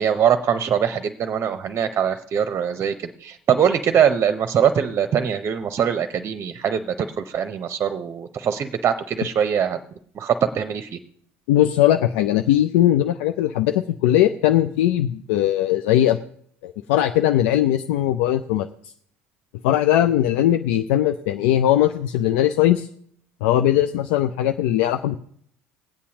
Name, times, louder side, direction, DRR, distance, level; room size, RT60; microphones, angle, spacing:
voice 1, 0.0-9.8 10.1-11.0, right 8 dB, 40° right, 9 dB, 0.7 m, -22 dB
voice 2, 11.5-16.2 16.6-18.9 19.6-22.9 23.4-25.2, left 12 dB, 70° left, 8 dB, 0.4 m, -19 dB
20.5 x 8.4 x 2.9 m, 0.64 s
hypercardioid pair, 65°, 7 cm